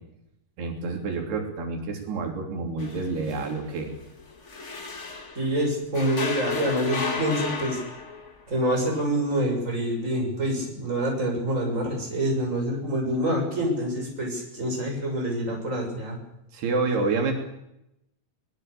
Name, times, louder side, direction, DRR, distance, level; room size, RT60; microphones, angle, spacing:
voice 1, 0.6-3.9 16.5-17.3, right 3 dB, 85° right, 2 dB, 5.2 m, -28 dB
sound 1, 2.8-5.6 5.9-8.4, left 4 dB, 50° left, 0.8 m, -33 dB
voice 2, 5.3-7.8 8.5-16.2, right 1 dB, 20° right, 1 dB, 6.8 m, -26 dB
22.5 x 20.5 x 6.8 m, 0.84 s
omnidirectional pair, 4.5 m